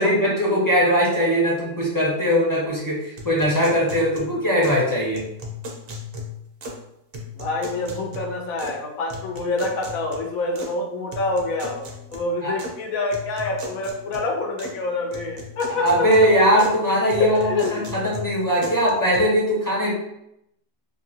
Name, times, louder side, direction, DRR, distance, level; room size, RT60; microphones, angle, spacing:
voice 1, 0.0-5.3 12.4-12.5 15.7-20.0, equal, 20° left, -6 dB, 0.6 m, -20 dB
sound 1, 3.2-4.9 5.1-6.9 7.1-8.8 9.1-10.7 11.1-12.8 13.1-14.8 15.1-16.8 17.1-19.2, left 2 dB, 60° right, 0.7 m, -37 dB
voice 2, 7.3-16.1 17.2-17.9, left 2 dB, 85° left, 1 dB, 1.1 m, -27 dB
2.9 x 2.7 x 2.7 m, 0.79 s
omnidirectional pair, 1.4 m